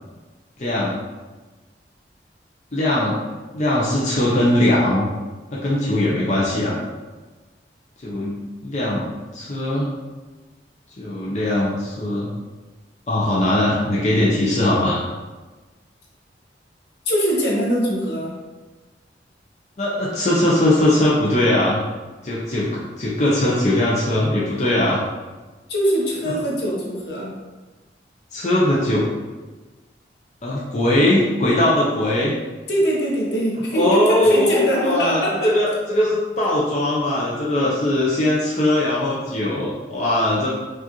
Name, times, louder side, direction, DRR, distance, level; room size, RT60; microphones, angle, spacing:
voice 1, 0.6-1.0 2.7-3.2 3.5-5.1 5.5-6.8 8.0-8.4 8.6-9.9 11.0-12.3 13.1-15.0 19.8-21.8 22.2-25.0 28.3-29.1 30.4-32.3 33.7-40.5, left 1 dB, 40° left, -6 dB, 0.5 m, -20 dB
voice 2, 17.1-18.4 25.7-27.4 32.7-35.5, equal, 70° left, -3 dB, 0.9 m, -22 dB
4.6 x 2.5 x 2.9 m, 1.2 s
head